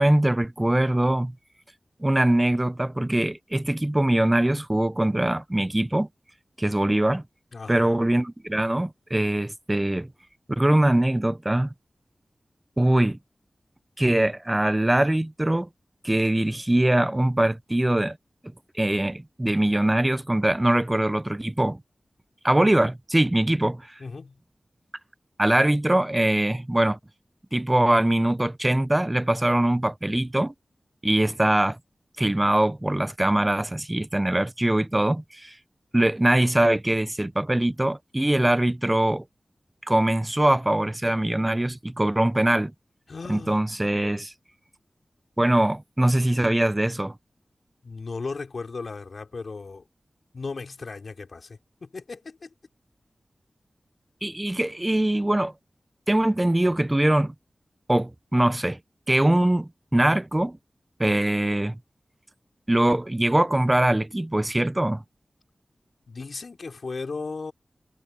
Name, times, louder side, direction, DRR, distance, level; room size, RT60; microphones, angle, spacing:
voice 1, 0.0-1.3 2.0-6.1 6.6-7.2 7.7-10.1 10.5-11.7 12.8-13.2 14.0-15.7 16.0-18.2 18.7-21.8 22.4-24.0 25.4-27.0 27.5-30.5 31.0-31.8 32.2-35.6 35.9-39.2 39.9-42.7 43.3-44.3 45.4-47.1 54.2-55.5 56.1-57.3 57.9-58.8 59.1-60.6 61.0-61.8 62.7-65.0, right 1 dB, 20° right, 0.5 m, -22 dB
voice 2, 7.5-8.0 24.0-24.4 43.1-43.6 47.8-49.9 50.3-52.5 66.1-67.5, left 4 dB, 75° left, 3.2 m, -36 dB
wide cardioid pair, 70°, 0 cm